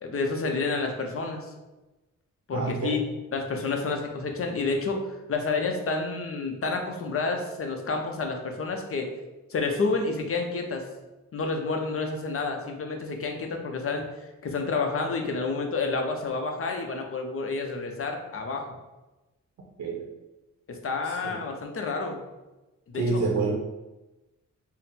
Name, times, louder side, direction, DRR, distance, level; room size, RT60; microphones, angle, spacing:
voice 1, 0.0-1.5 2.5-3.0 3.3-5.0 5.3-9.1 9.5-10.8 11.3-14.1 14.4-18.6 20.7-22.2 22.9-23.2, left 3 dB, 45° left, 3 dB, 0.6 m, -29 dB
voice 2, 2.5-3.0 19.8-20.1 21.0-21.4 22.9-23.5, right 4 dB, 70° right, -2 dB, 0.7 m, -28 dB
3.8 x 2.0 x 4.0 m, 1.1 s
wide cardioid pair, 110°, 31 cm